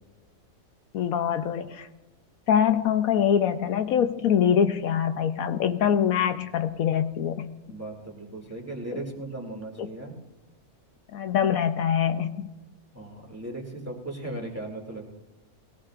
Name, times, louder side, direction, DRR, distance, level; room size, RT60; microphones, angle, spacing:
voice 1, 0.9-1.9 2.5-7.5 9.8-9.9 11.1-12.5, left 8 dB, 75° left, 8 dB, 1.1 m, -24 dB
voice 2, 7.7-10.1 12.9-15.0, right 2 dB, 10° right, -1 dB, 2.4 m, -37 dB
22.0 x 18.0 x 2.5 m, 1.1 s
omnidirectional pair, 1.5 m